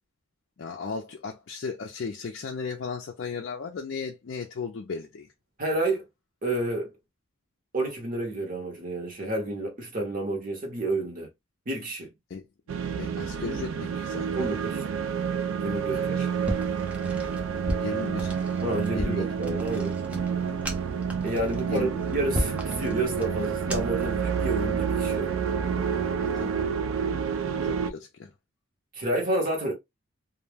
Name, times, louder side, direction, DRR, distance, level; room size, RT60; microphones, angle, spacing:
voice 1, 0.6-5.3 12.3-12.4 13.0-14.5 15.9-16.3 17.8-18.3 18.9-19.2 20.4-20.6 21.7-21.9 26.2-26.6 27.6-28.3, left 4 dB, 55° left, 0.4 m, -36 dB
voice 2, 5.6-6.0 6.4-6.9 7.7-11.3 11.7-12.1 14.3-14.8 15.6-16.3 18.6-20.0 21.2-25.3 28.9-29.7, right 2 dB, 40° right, 0.9 m, -30 dB
sound 1, 12.7-27.9, right 7 dB, 80° right, 0.3 m, -29 dB
sound 2, 16.4-24.1, equal, 5° right, 0.4 m, -35 dB
2.3 x 2.1 x 3.2 m
head